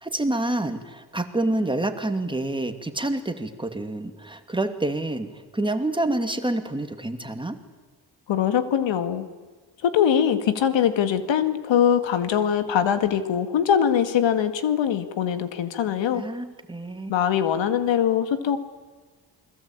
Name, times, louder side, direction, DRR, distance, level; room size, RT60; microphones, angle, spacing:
voice 1, 0.0-7.6 16.1-17.1, right 2 dB, 10° right, 7 dB, 2.4 m, -28 dB
voice 2, 8.3-9.3 9.8-16.2 17.1-18.6, left 9 dB, 80° left, 10 dB, 2.1 m, -22 dB
28.5 x 21.5 x 8.9 m, 1.4 s
cardioid pair, 105°, 44 cm